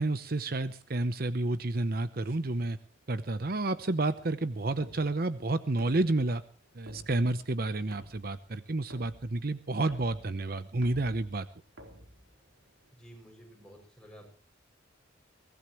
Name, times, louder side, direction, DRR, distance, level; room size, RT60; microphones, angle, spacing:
voice 1, 0.0-2.8 3.1-6.4 6.7-11.5, right 2 dB, 50° right, 12 dB, 0.8 m, -30 dB
sound 1, 2.2-12.9, equal, 85° right, 3.9 m, -54 dB
voice 2, 12.9-14.3, equal, 5° left, 0 dB, 6.8 m, -52 dB
22.5 x 17.5 x 3.1 m, 0.40 s
head